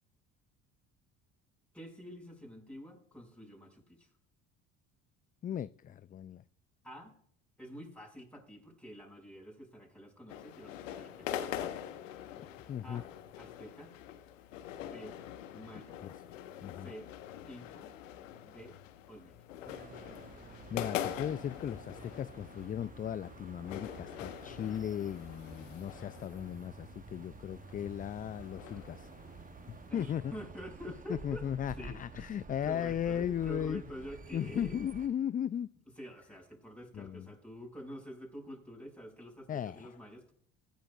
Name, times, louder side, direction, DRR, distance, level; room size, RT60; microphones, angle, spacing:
voice 1, 1.7-4.1 6.8-7.1 7.6-11.4 12.8-13.1 13.4-13.9 14.8-15.2 15.5-16.0 16.8-17.1 17.5-17.9 18.4-18.8 19.1-19.5 29.9-34.8 36.0-40.3, equal, 5° left, 6.1 m, -48 dB
voice 2, 5.4-6.4 12.7-13.0 16.0-16.1 16.6-16.9 20.7-29.1 29.7-30.3 31.1-33.8 34.3-35.7 36.9-37.3 39.5-39.9, left 9 dB, 25° left, 0.4 m, -36 dB
sound 1, 10.3-29.9, left 11 dB, 85° left, 1.4 m, -44 dB
sound 2, 19.6-35.1, right 4 dB, 20° right, 0.9 m, -51 dB
23.0 x 10.5 x 2.5 m
hypercardioid pair, 65°, 38 cm